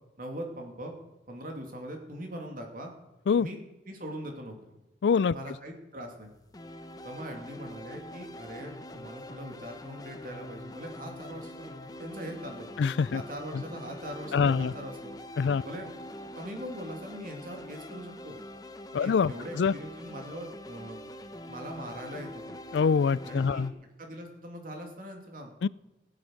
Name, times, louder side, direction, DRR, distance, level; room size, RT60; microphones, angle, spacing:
voice 1, 0.2-0.9 1.3-2.9 3.4-3.6 3.9-4.6 5.3-6.3 7.0-12.7 13.1-15.2 15.6-15.9 16.2-18.4 19.0-21.1 21.5-22.6 23.2-23.7 24.0-25.5, equal, 50° right, 3 dB, 2.7 m, -41 dB
voice 2, 5.0-5.4 12.8-13.2 13.5-13.6 14.3-14.7 15.4-15.6 18.9-19.8 22.7-23.7 25.6-25.7, left 6 dB, 75° left, 21 dB, 0.4 m, -25 dB
sound 1, 6.5-23.7, left 1 dB, 20° left, 0.9 m, -44 dB
15.5 x 9.8 x 6.5 m, 1.0 s
head